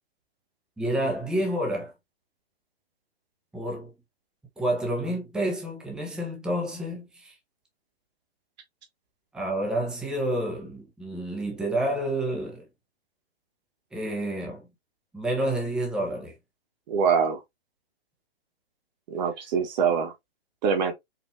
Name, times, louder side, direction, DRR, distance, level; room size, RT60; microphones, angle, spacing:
voice 1, 0.8-1.9 3.5-3.9 4.6-7.4 9.3-12.7 13.9-14.7 15.1-16.4, right 1 dB, ahead, 0.6 m, -29 dB
voice 2, 16.9-17.4 19.1-20.1 20.6-20.9, right 6 dB, 45° right, 1.3 m, -24 dB
4.3 x 2.6 x 2.6 m
hypercardioid pair, 130°, 31 cm